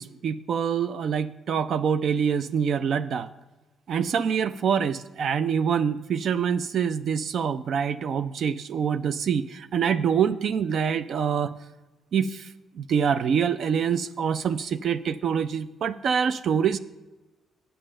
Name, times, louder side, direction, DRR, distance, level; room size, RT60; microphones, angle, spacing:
voice 1, 0.0-3.3 3.9-11.5 12.1-12.4 12.8-16.8, right 7 dB, 60° right, 13 dB, 0.4 m, -25 dB
7.7 x 6.8 x 6.3 m, 1.1 s
cardioid pair, 90°, 0 cm